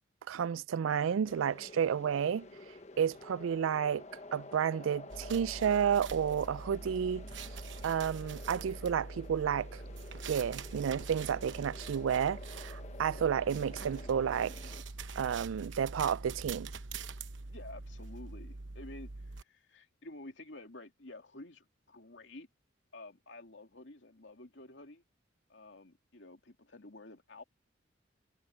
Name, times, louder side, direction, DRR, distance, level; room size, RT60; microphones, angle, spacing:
voice 1, 0.3-2.5 3.0-4.0 4.3-7.3 7.8-9.8 10.2-14.6 15.2-16.7, right 8 dB, 90° right, 0.4 m, -31 dB
sound 1, 1.2-14.8, left 2 dB, 35° left, 1.0 m, -50 dB
sound 2, 5.1-19.4, right 3 dB, 70° right, 1.0 m, -44 dB
voice 2, 17.5-22.5 22.9-25.0 25.5-27.4, left 2 dB, 70° left, 2.7 m, -51 dB
head